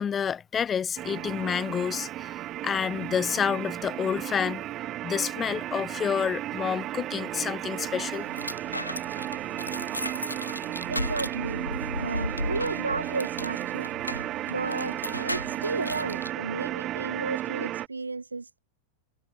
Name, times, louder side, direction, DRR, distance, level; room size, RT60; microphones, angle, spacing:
voice 1, 0.0-4.6 5.0-8.3, left 7 dB, 20° left, 0.8 m, -29 dB
sound 1, 1.0-17.9, right 14 dB, 35° right, 0.6 m, -34 dB
sound 2, 4.8-17.0, right 4 dB, 15° right, 4.8 m, -53 dB
sound 3, 7.7-16.3, left 1 dB, 85° left, 0.8 m, -36 dB
voice 2, 10.9-13.9 14.5-18.6, right 3 dB, 80° right, 0.9 m, -33 dB
figure-of-eight pair, 90°, 0 cm